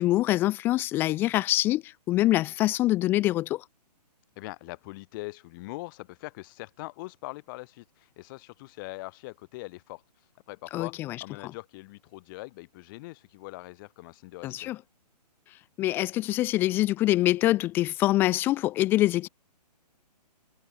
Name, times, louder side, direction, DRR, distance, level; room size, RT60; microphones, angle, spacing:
voice 1, 0.0-3.6 10.7-11.2 11.4-11.5 14.4-14.8 15.8-19.3, left 16 dB, 10° left, 0.4 m, -25 dB
voice 2, 4.4-10.0 10.5-14.7, left 22 dB, 30° left, 3.6 m, -42 dB
figure-of-eight pair, 130°, 21 cm